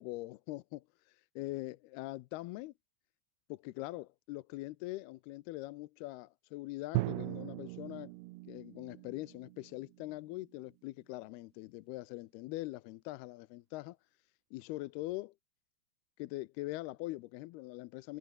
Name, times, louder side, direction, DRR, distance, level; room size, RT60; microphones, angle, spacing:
voice 1, 0.0-2.7 3.5-8.1 8.5-14.0 14.5-15.3 16.2-18.2, left 19 dB, 80° left, 2.5 m, -42 dB
Drum, 7.0-10.7, right 22 dB, 85° right, 2.5 m, -40 dB
omnidirectional pair, 5.0 m